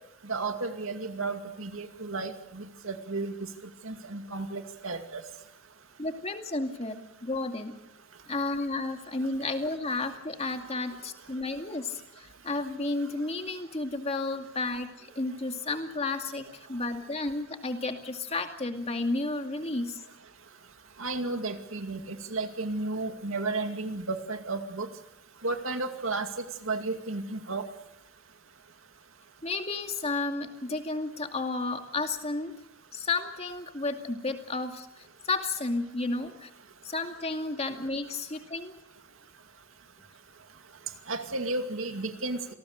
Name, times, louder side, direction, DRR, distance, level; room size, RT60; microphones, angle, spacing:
voice 1, 0.3-3.3 3.8-5.2 21.0-24.9 25.4-26.3 26.7-27.6 41.1-42.4, right 3 dB, 70° right, 6 dB, 2.4 m, -33 dB
voice 2, 6.0-7.8 8.3-20.0 29.4-32.5 32.9-34.9 35.3-36.5 36.8-38.7, left 3 dB, 30° left, 5 dB, 2.3 m, -32 dB
27.5 x 19.5 x 6.7 m, 0.86 s
head